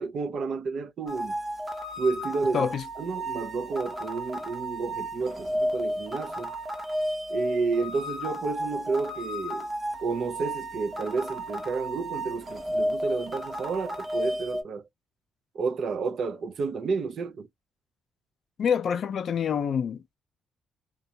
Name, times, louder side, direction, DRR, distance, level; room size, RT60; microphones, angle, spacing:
voice 1, 0.0-1.4 2.0-2.7 3.0-6.5 7.3-9.7 10.0-14.8 15.5-17.5, right 4 dB, 60° right, 0.5 m, -31 dB
sound 1, 1.1-14.6, equal, 30° right, 0.7 m, -33 dB
voice 2, 2.5-2.8 18.6-20.2, left 7 dB, 60° left, 0.4 m, -27 dB
2.6 x 2.2 x 2.8 m
cardioid pair, 90°, 0 cm